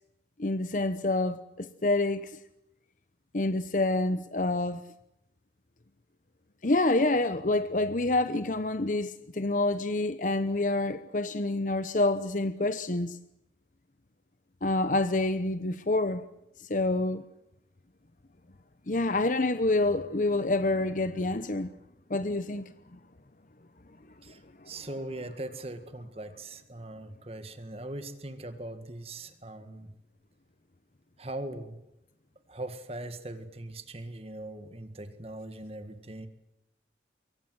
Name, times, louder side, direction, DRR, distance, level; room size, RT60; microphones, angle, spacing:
voice 1, 0.4-2.4 3.3-4.8 6.6-13.2 14.6-16.2 16.6-17.2 18.9-21.7 22.1-23.0 24.3-24.4 24.6-24.7, left 2 dB, 45° left, 0.9 m, -27 dB
voice 2, 24.2-29.9 31.2-31.8 32.5-36.3, right 1 dB, 35° right, 1.8 m, -40 dB
25.5 x 23.0 x 7.8 m
head